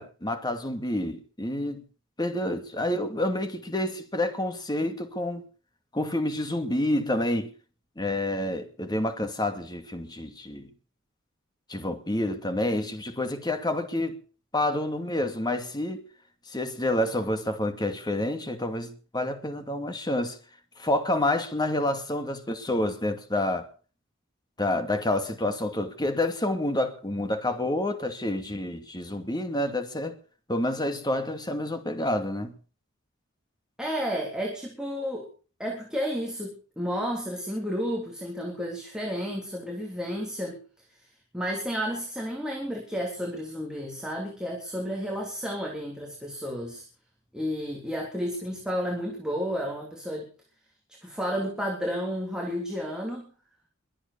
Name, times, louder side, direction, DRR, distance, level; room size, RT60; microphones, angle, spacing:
voice 1, 0.0-1.8 2.2-5.5 5.9-7.5 8.0-10.7 11.7-14.2 14.5-16.0 16.5-20.4 20.8-23.7 24.6-30.2 30.5-32.5, left 1 dB, 20° left, 2.5 m, -28 dB
voice 2, 33.8-35.3 35.6-40.6 41.3-46.9 47.3-50.3 51.0-53.3, equal, 5° right, 3.5 m, -32 dB
22.5 x 8.7 x 7.0 m
head